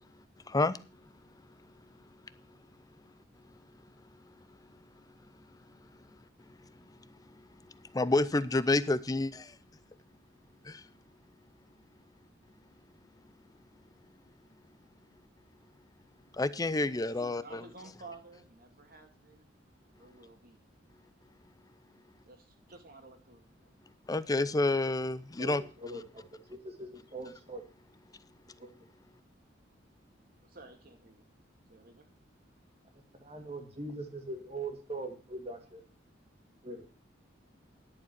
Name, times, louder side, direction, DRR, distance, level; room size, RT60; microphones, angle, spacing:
voice 1, 0.5-0.8 7.9-9.5 10.6-10.8 16.4-17.6 24.1-25.6, left 2 dB, 20° left, 0.5 m, -29 dB
voice 2, 16.9-19.5 19.9-20.6 22.3-23.6 30.4-31.2 31.7-32.1, right 3 dB, 50° right, 2.0 m, -53 dB
voice 3, 25.4-27.6 28.6-28.9 32.9-35.8 36.6-36.9, right 2 dB, 35° right, 2.2 m, -42 dB
11.0 x 7.3 x 5.9 m
head